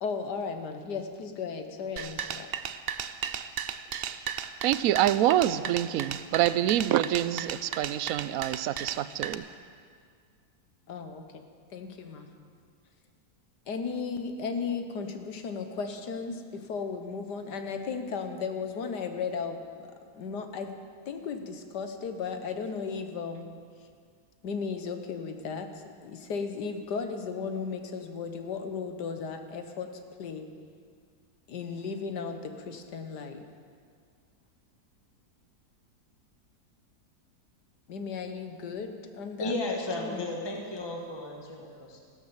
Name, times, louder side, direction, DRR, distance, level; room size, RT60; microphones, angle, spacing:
voice 1, 0.0-2.5 10.9-11.4 11.7-12.3 13.7-20.7 21.1-23.5 24.4-25.7 26.0-29.9 30.2-30.5 31.5-33.5 37.9-40.5, left 5 dB, 80° left, 6 dB, 1.8 m, -35 dB
sound 1, 2.0-9.3, right 8 dB, 90° right, 0.5 m, -35 dB
voice 2, 4.6-9.4, right 12 dB, 70° right, 15 dB, 0.9 m, -26 dB
voice 3, 39.4-42.0, left 1 dB, 15° left, 0 dB, 1.5 m, -34 dB
15.5 x 12.0 x 7.1 m, 2.1 s
omnidirectional pair, 1.8 m